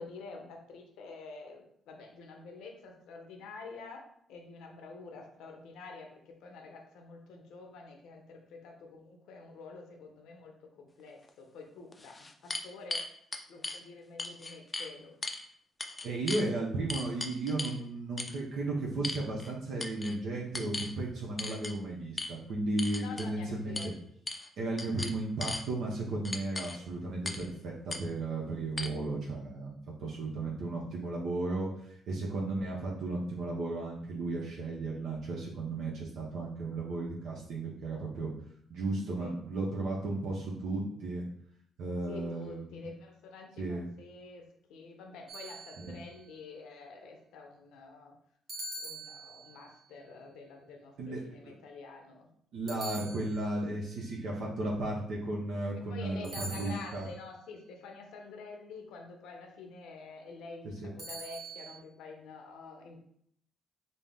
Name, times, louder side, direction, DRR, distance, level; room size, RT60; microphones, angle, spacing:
voice 1, 0.0-13.0 13.5-15.2 23.0-23.9 39.2-39.3 42.1-48.1 48.8-52.3 55.9-63.0, left 4 dB, 90° left, 2 dB, 0.6 m, -48 dB
sound 1, 11.3-11.4 11.9-13.8 14.2-14.9 15.2-15.4 15.8-16.5 16.9-17.8 18.2-18.4 19.0-19.5 19.8-20.2 20.5-20.9 21.4-21.7 22.2-22.3 22.8-23.3 23.8-23.9 24.3-24.5 24.8-25.6 26.3-26.8 27.3-27.5 27.9-28.0 28.8-28.9, left 2 dB, 25° left, 0.4 m, -37 dB
voice 2, 16.0-23.8 24.6-31.7 32.1-38.3 38.7-41.3 41.8-42.9 43.6-43.9 45.8-46.0 51.0-51.2 52.5-57.1, right 2 dB, 75° right, -4 dB, 0.7 m, -34 dB
sound 2, 45.3-46.2 48.5-49.7 52.7-53.7 56.2-57.2 61.0-61.8, right 3 dB, 50° right, 0.9 m, -44 dB
4.0 x 2.0 x 3.4 m, 0.68 s
cardioid pair, 90°, 0 cm